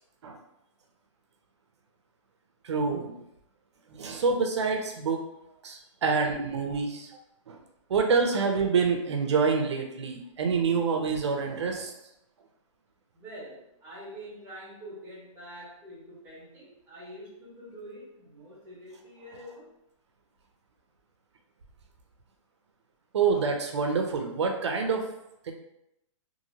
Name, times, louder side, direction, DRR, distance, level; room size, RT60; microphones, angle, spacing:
voice 1, 2.6-3.1 3.9-5.2 5.6-7.1 7.5-7.6 7.9-11.9 23.1-25.0 25.4-25.5, right 5 dB, 60° right, 3 dB, 0.5 m, -27 dB
voice 2, 13.1-19.7, equal, 10° right, -10 dB, 1.4 m, -45 dB
2.8 x 2.6 x 2.7 m, 0.83 s
hypercardioid pair, 180°, 17 cm